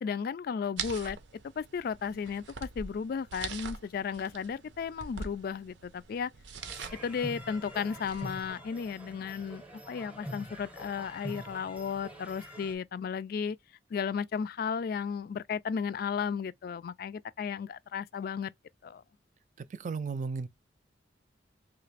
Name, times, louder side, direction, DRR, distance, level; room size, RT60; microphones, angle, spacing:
voice 1, 0.0-1.2 1.6-6.3 7.0-13.6 13.9-18.5 18.8-19.0, left 6 dB, 55° left, 0.3 m, -34 dB
sound 1, 0.8-8.5, right 5 dB, 80° right, 0.6 m, -44 dB
sound 2, 6.6-12.8, equal, 10° right, 0.7 m, -45 dB
voice 2, 19.6-20.5, right 4 dB, 45° right, 0.3 m, -35 dB
3.2 x 2.5 x 3.1 m
head